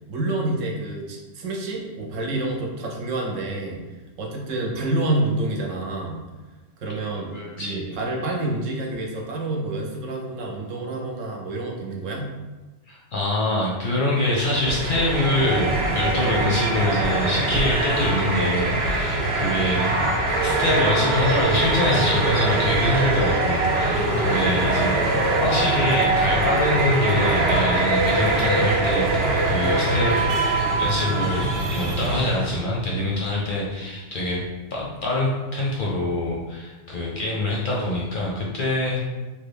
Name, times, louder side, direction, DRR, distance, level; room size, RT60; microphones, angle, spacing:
voice 1, 0.1-3.8 4.2-6.2 6.8-12.3 23.9-24.9, right 2 dB, 85° right, 0 dB, 1.0 m, -28 dB
voice 2, 7.3-8.0 12.9-19.9 20.4-30.2 30.8-34.4 34.7-39.1, left 1 dB, 55° left, -3 dB, 0.6 m, -25 dB
sound 1, 14.2-32.7, right 2 dB, 60° right, 0.8 m, -22 dB
3.1 x 2.2 x 3.3 m, 1.2 s
omnidirectional pair, 1.3 m